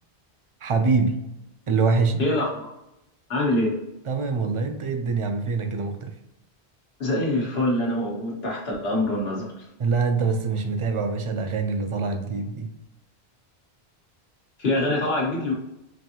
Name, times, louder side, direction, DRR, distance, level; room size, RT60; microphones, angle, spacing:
voice 1, 0.6-1.3 1.7-2.2 4.1-6.1 9.8-12.7, right 4 dB, 45° right, 6 dB, 0.4 m, -24 dB
voice 2, 2.2-2.7 3.3-3.8 7.0-9.5 14.6-15.5, left 1 dB, 75° left, -2 dB, 1.4 m, -24 dB
5.2 x 2.6 x 2.8 m, 0.87 s
omnidirectional pair, 1.0 m